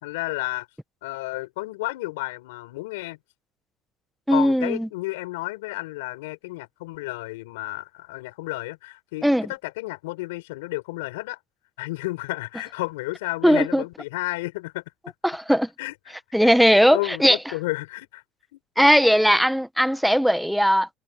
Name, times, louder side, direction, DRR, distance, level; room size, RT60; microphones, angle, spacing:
voice 1, 0.0-0.7 1.0-3.2 4.3-11.4 11.8-14.8 15.8-15.9 16.4-16.6 16.9-18.2 18.5-18.6, left 21 dB, 90° left, 4.8 m, -32 dB
voice 2, 4.3-4.9 9.2-9.5 13.4-13.8 15.2-15.7 16.3-17.4 18.8-20.9, equal, ahead, 1.5 m, -18 dB
supercardioid pair, 90°, 0 cm